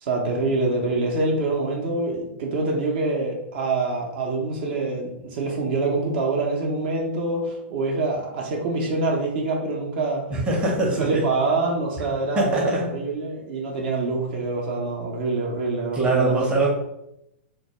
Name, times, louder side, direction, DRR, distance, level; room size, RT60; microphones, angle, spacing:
voice 1, 0.0-10.2 10.8-16.5, right 3 dB, 60° right, -1 dB, 0.6 m, -25 dB
voice 2, 10.3-11.3 12.0-12.1 12.4-12.8 15.9-16.7, right 2 dB, 15° right, -3 dB, 0.6 m, -22 dB
2.2 x 2.1 x 2.8 m, 0.84 s
hypercardioid pair, 120°, 6 cm